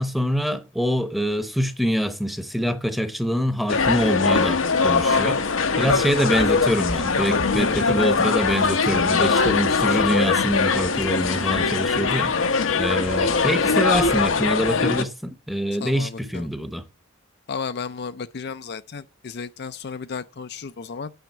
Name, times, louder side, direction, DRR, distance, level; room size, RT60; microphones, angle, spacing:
voice 1, 0.0-16.8, equal, ahead, 0.9 m, -25 dB
sound 1, 3.7-15.0, left 4 dB, 80° left, 0.9 m, -21 dB
voice 2, 15.8-16.5 17.5-21.1, left 5 dB, 55° left, 0.5 m, -33 dB
9.1 x 6.4 x 7.1 m
head